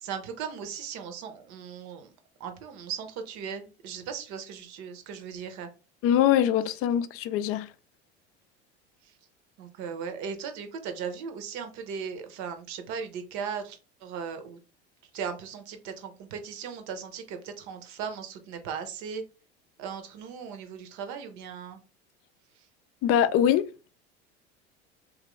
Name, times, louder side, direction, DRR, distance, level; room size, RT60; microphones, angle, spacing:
voice 1, 0.0-2.1 2.4-5.7 9.0-9.1 9.6-14.6 15.1-19.2 19.8-21.8, right 6 dB, 60° right, 0.9 m, -37 dB
voice 2, 6.0-7.7 23.0-23.9, left 10 dB, 45° left, 0.4 m, -23 dB
2.9 x 2.6 x 3.0 m
hypercardioid pair, 80°, 33 cm